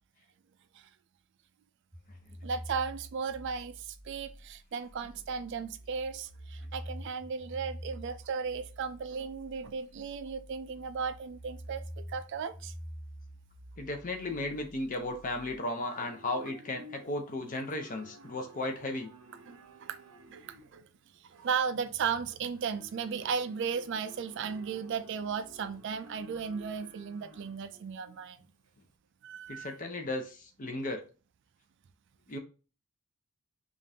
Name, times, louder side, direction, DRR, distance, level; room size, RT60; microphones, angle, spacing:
sound 1, 1.9-15.5, equal, 5° right, 1.7 m, -47 dB
voice 1, 2.4-12.7 19.5-20.0 20.3-20.8 21.2-28.5 29.2-29.8, right 6 dB, 55° right, 0.3 m, -36 dB
voice 2, 13.8-19.1 29.5-31.0 32.3-32.4, left 2 dB, 35° left, 0.7 m, -35 dB
Livestock farm animals working animals, 14.2-28.9, right 1 dB, 80° right, 0.7 m, -55 dB
5.1 x 2.5 x 2.7 m
head